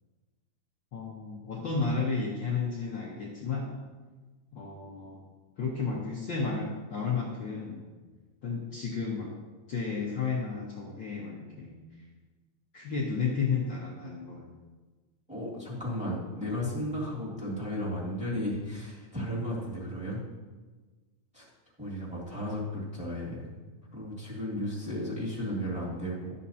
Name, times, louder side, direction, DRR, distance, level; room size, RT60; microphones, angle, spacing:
voice 1, 0.9-3.7 4.5-5.3 5.6-7.8 8.4-9.3 9.7-11.8 12.7-14.4, left 5 dB, 70° left, -3 dB, 1.1 m, -32 dB
voice 2, 15.3-20.2 21.3-21.5 21.8-23.5 23.9-26.3, equal, 5° right, -7 dB, 1.9 m, -34 dB
12.5 x 7.4 x 2.8 m, 1.3 s
omnidirectional pair, 3.6 m